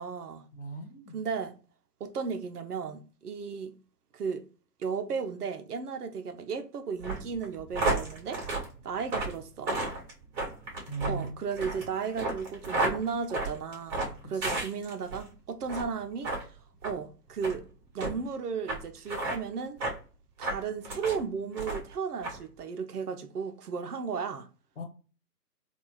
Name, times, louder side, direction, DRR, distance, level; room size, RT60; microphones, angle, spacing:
voice 1, 0.0-0.5 1.1-1.5 2.0-3.7 4.1-4.4 4.8-8.4 8.8-9.7 11.0-16.6 16.8-17.7 17.9-19.8 20.4-24.5, right 6 dB, 65° right, 0.7 m, -35 dB
voice 2, 0.5-1.2 10.9-11.4 14.4-14.6 24.8-24.9, right 3 dB, 45° left, 1.1 m, -37 dB
sound 1, 7.0-15.2 15.6-15.9 16.2-16.4 16.8-17.0 17.4-17.6 18.0-18.1 18.7-18.8 19.1-19.4 19.8-20.0 20.4-21.2 21.5-21.9 22.2-22.4, right 2 dB, 25° right, 1.8 m, -32 dB
3.4 x 2.4 x 2.9 m
hypercardioid pair, 155°, 50 cm